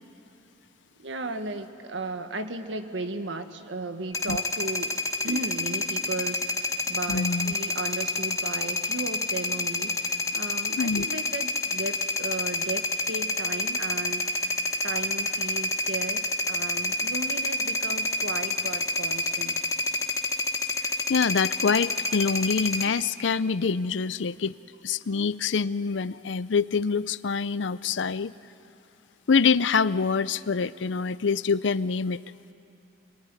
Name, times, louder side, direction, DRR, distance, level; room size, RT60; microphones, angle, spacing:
voice 1, 1.0-4.9 5.2-14.6 14.8-19.6, right 2 dB, 85° right, 7 dB, 1.6 m, -35 dB
sound 1, 4.1-22.8, left 2 dB, 15° left, 1.3 m, -28 dB
voice 2, 7.1-7.5 10.8-11.1 21.1-24.5 24.8-28.3 29.3-32.2, left 5 dB, 85° left, 15 dB, 0.6 m, -25 dB
26.0 x 23.5 x 9.8 m, 2.8 s
head